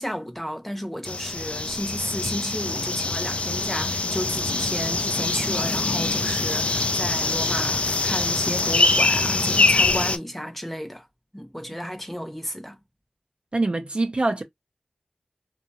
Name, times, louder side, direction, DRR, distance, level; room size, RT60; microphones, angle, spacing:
voice 1, 0.0-11.1 11.3-12.8, equal, 5° left, 0.8 m, -33 dB
sound 1, 1.0-10.2, left 3 dB, 55° left, 0.3 m, -24 dB
voice 2, 13.5-14.4, right 2 dB, 45° right, 0.5 m, -24 dB
2.7 x 2.2 x 2.7 m
wide cardioid pair, 50°, 3 cm